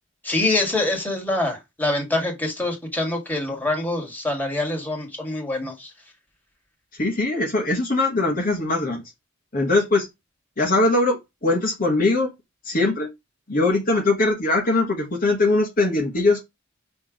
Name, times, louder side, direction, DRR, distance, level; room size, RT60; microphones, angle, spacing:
voice 1, 0.2-5.9, left 2 dB, 10° left, 2.1 m, -25 dB
voice 2, 6.9-9.0 9.5-10.1 10.6-12.3 12.6-13.1 13.5-16.4, left 2 dB, 45° left, 1.4 m, -21 dB
6.0 x 3.4 x 5.1 m
head